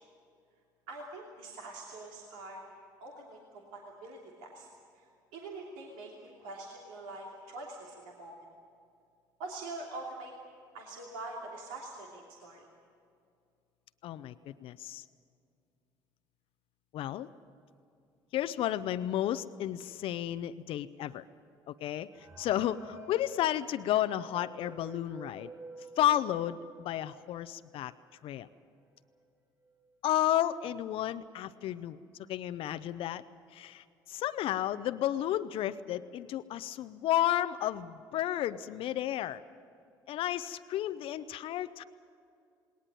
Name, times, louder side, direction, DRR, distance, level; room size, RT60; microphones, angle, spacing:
voice 1, 0.9-2.6 3.0-4.7 5.3-8.3 9.4-10.3 10.7-12.7, right 2 dB, 80° right, -2 dB, 2.9 m, -44 dB
voice 2, 14.0-15.0 16.9-17.3 18.3-21.2 21.7-25.5 26.0-27.9 28.2-28.5 30.0-32.0 32.3-33.2 33.5-39.4 40.1-41.8, left 12 dB, 60° left, 13 dB, 0.6 m, -32 dB
sound 1, 22.1-27.5 28.0-28.1 28.3-28.4 29.2-29.3 29.6-30.0, right 3 dB, 35° right, 6.6 m, -51 dB
19.5 x 18.5 x 9.2 m, 2.4 s
hypercardioid pair, 70°, 10 cm